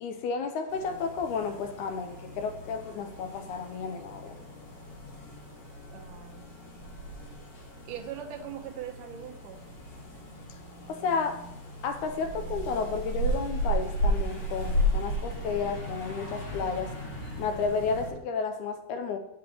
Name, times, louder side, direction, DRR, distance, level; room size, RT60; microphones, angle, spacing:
voice 1, 0.0-4.4 10.9-11.4 11.8-16.9 17.4-19.2, left 5 dB, 75° left, 7 dB, 2.0 m, -32 dB
sound 1, 0.7-18.1, equal, 50° left, 3.9 m, -35 dB
voice 2, 5.9-6.4 7.9-9.6, right 9 dB, 75° right, 3 dB, 2.4 m, -40 dB
9.2 x 7.4 x 4.4 m, 0.81 s
omnidirectional pair, 3.8 m